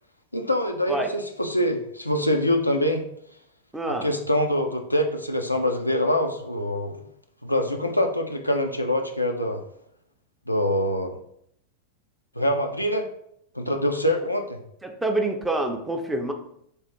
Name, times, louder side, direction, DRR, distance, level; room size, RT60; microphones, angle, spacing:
voice 1, 0.3-3.0 3.9-7.0 7.4-9.6 10.5-11.2 12.4-13.1 13.5-14.6, left 1 dB, 85° left, 4 dB, 0.4 m, -24 dB
voice 2, 3.7-4.1 14.8-16.3, right 2 dB, 5° right, 3 dB, 0.5 m, -26 dB
3.3 x 2.4 x 4.3 m, 0.72 s
figure-of-eight pair, 90°, 0 cm